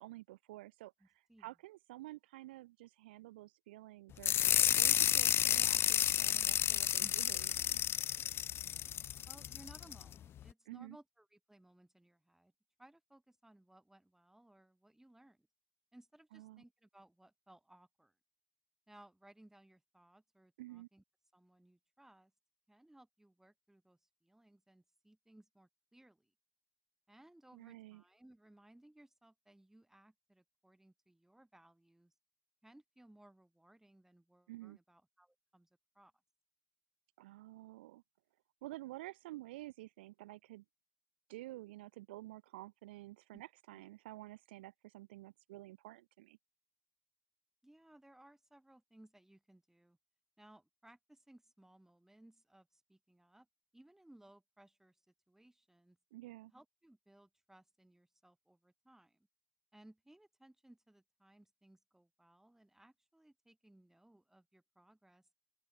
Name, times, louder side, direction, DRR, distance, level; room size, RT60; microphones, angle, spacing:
voice 1, 0.0-4.3 4.8-7.8 10.7-11.0 16.3-16.6 20.6-20.9 27.5-28.0 34.5-34.8 37.2-38.0 38.6-40.6 41.3-46.4 56.1-56.5, right 18 dB, 70° right, 2.1 m, -51 dB
voice 2, 1.0-1.5 7.0-7.4 9.3-12.5 12.8-15.5 15.9-18.2 18.9-21.0 21.3-22.3 22.7-26.3 27.1-32.1 32.6-36.1 43.3-43.4 47.6-50.0 50.4-53.5 53.7-56.0 56.5-59.3 59.7-65.3, right 1 dB, 5° right, 7.6 m, -63 dB
sound 1, 4.2-10.0, left 10 dB, 45° left, 0.5 m, -31 dB
open air
figure-of-eight pair, 55°, 6 cm